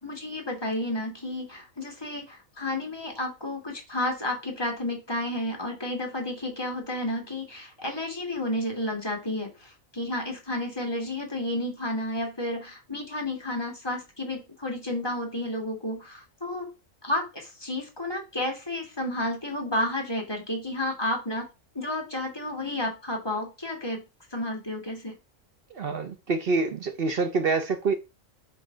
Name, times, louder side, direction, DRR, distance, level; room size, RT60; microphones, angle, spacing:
voice 1, 0.0-16.7 17.0-21.5 21.7-24.0 24.3-25.1, left 1 dB, 20° left, 1.9 m, -31 dB
voice 2, 25.7-27.9, right 4 dB, 50° right, 0.8 m, -26 dB
5.3 x 3.8 x 5.5 m
omnidirectional pair, 1.4 m